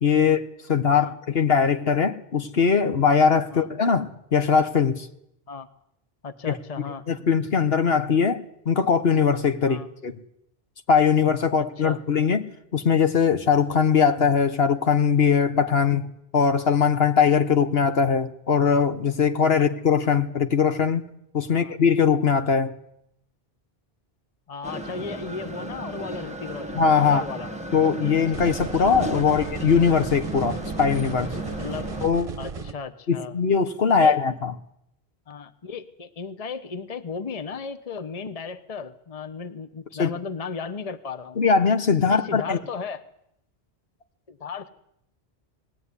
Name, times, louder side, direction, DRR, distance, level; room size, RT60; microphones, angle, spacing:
voice 1, 0.0-0.4 0.7-5.1 6.5-6.6 7.1-10.2 10.9-16.0 16.3-21.0 21.3-22.7 26.7-27.2 27.7-31.3 32.0-32.3 33.1-34.5 40.0-40.1 41.4-42.6, left 6 dB, 70° left, 1.5 m, -21 dB
voice 2, 6.2-7.0 9.6-9.9 11.6-12.0 19.6-19.7 21.5-21.8 24.5-27.5 29.3-29.5 31.6-31.9 32.4-33.4 33.9-34.2 35.3-41.4 42.1-43.0 44.3-44.7, left 5 dB, 35° left, 1.1 m, -35 dB
sound 1, 24.6-32.1, right 1 dB, 5° right, 1.6 m, -35 dB
sound 2, 28.3-32.7, right 4 dB, 35° right, 1.1 m, -35 dB
20.0 x 16.0 x 9.8 m
omnidirectional pair, 1.1 m